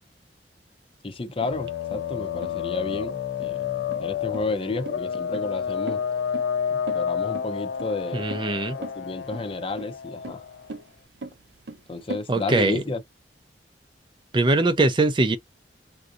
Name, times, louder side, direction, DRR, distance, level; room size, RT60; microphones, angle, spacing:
voice 1, 1.0-6.0 6.7-8.3 8.7-10.4 11.9-13.0, left 3 dB, 30° left, 0.5 m, -32 dB
sound 1, 1.4-12.3, right 3 dB, 75° right, 0.6 m, -40 dB
sound 2, 1.5-10.8, left 8 dB, 80° left, 0.4 m, -30 dB
voice 2, 8.1-8.8 12.3-12.8 14.3-15.4, right 2 dB, 30° right, 0.4 m, -21 dB
3.6 x 2.6 x 2.5 m
head